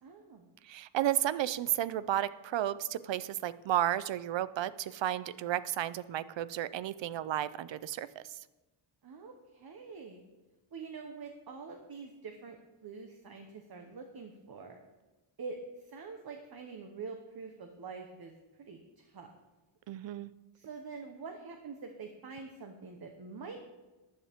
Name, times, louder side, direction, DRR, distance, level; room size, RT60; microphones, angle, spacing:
voice 1, 0.0-0.5 9.0-10.2 10.7-12.6 12.8-14.8 15.4-19.3 20.5-23.6, right 4 dB, 45° right, 4 dB, 1.1 m, -45 dB
voice 2, 0.6-8.4 19.9-20.3, right 12 dB, 60° right, 16 dB, 0.6 m, -33 dB
14.5 x 11.0 x 3.6 m, 1.1 s
wide cardioid pair, 150°, 50 cm